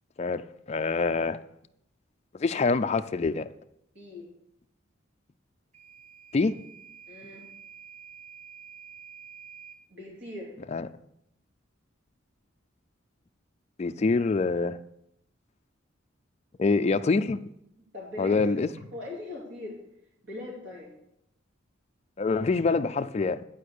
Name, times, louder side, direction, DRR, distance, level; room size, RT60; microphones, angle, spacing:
voice 1, 0.2-1.4 2.3-3.5 6.3-6.6 10.7-10.9 13.8-14.8 16.6-17.4 18.2-18.7 22.2-23.4, left 4 dB, 35° left, 0.4 m, -25 dB
voice 2, 3.9-4.3 7.1-7.4 9.9-10.6 17.9-18.4 18.9-19.8 20.2-20.9, left 2 dB, 60° right, 2.8 m, -40 dB
Microwave oven / Alarm, 5.7-9.8, right 7 dB, 35° right, 1.4 m, -48 dB
10.5 x 5.0 x 6.4 m
head